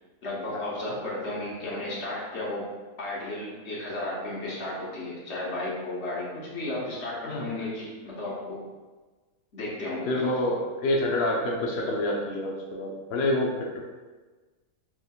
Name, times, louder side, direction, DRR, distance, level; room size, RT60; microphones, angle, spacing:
voice 1, 0.2-2.7 3.0-8.6 9.5-10.1, left 1 dB, 45° left, -5 dB, 1.2 m, -34 dB
voice 2, 7.3-7.6 10.1-13.8, left 1 dB, 80° left, -1 dB, 0.5 m, -27 dB
4.5 x 3.4 x 2.3 m, 1.3 s
omnidirectional pair, 1.8 m